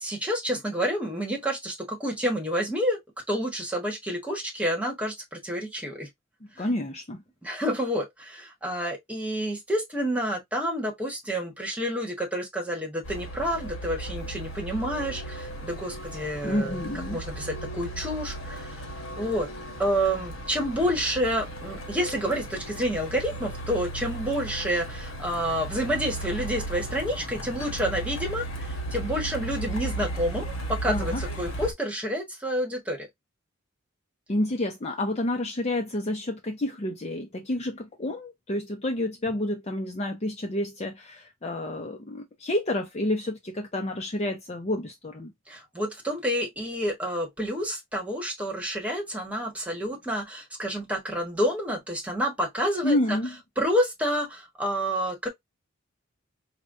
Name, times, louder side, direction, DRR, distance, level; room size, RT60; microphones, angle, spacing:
voice 1, 0.0-3.0 3.3-6.1 6.5-6.6 7.4-16.8 17.1-18.9 19.2-19.5 19.8-33.1 45.5-53.2 53.6-55.3, equal, 5° right, 1.1 m, -29 dB
voice 2, 6.6-7.2 16.4-17.2 30.9-31.2 34.3-45.3 52.8-53.3, left 1 dB, 30° left, 0.6 m, -29 dB
Truck, 13.0-31.7, right 1 dB, 70° left, 1.1 m, -36 dB
5.0 x 2.2 x 2.5 m
head